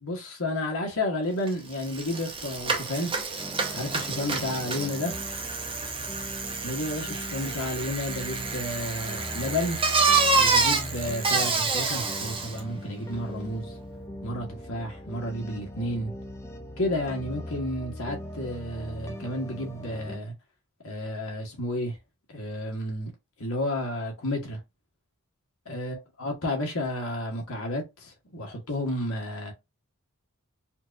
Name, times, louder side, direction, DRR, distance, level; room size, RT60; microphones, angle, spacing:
voice 1, 0.0-3.1 3.7-5.1 6.6-9.8 10.3-13.7 14.2-16.1 16.8-20.3 20.8-22.0 22.3-23.1 23.4-24.6 25.6-29.5, left 1 dB, 70° left, 1.3 m, -31 dB
Bicycle, 1.5-1.6 1.8-12.6, right 4 dB, 25° right, 0.7 m, -28 dB
sound 1, 3.4-20.2, left 1 dB, 10° left, 0.4 m, -40 dB
4.4 x 2.4 x 2.6 m
head